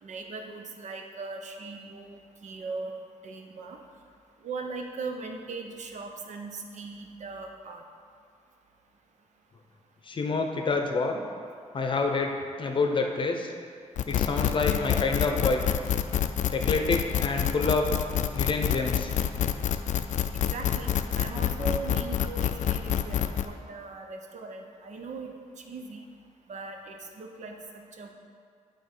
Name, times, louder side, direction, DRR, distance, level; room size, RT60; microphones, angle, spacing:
voice 1, 0.0-2.9 3.2-3.8 4.4-7.8 20.3-26.0 26.5-28.1, right 3 dB, 75° right, 3 dB, 0.8 m, -39 dB
voice 2, 10.1-11.2 11.7-13.5 14.1-15.6 16.5-17.9 18.3-19.1, left 3 dB, 40° left, 3 dB, 0.7 m, -27 dB
sound 1, 14.0-23.5, left 10 dB, 85° left, 0.4 m, -27 dB
9.7 x 3.7 x 5.4 m, 2.2 s
wide cardioid pair, 170°, 12 cm